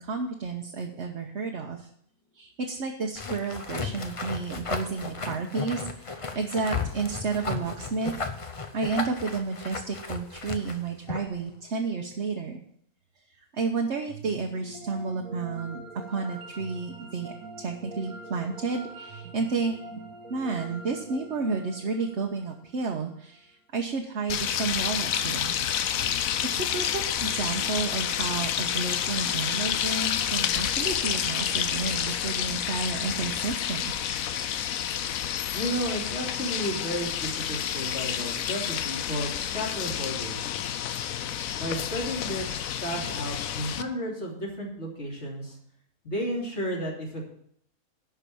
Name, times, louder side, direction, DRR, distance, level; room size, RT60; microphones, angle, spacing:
voice 1, 0.0-1.9 2.3-8.1 8.7-12.6 13.4-15.8 16.1-19.8 20.3-25.5 26.5-33.9, right 4 dB, 55° right, 2 dB, 1.2 m, -31 dB
sound 1, 3.2-11.4, left 4 dB, 30° left, 0.6 m, -35 dB
sound 2, 14.1-23.2, right 2 dB, 90° right, 1.9 m, -44 dB
sound 3, 24.3-43.8, left 9 dB, 75° left, 1.1 m, -29 dB
voice 2, 35.5-40.4 41.6-45.6 46.0-47.3, equal, 50° left, -3 dB, 3.3 m, -33 dB
11.5 x 4.9 x 8.5 m, 0.67 s
omnidirectional pair, 1.5 m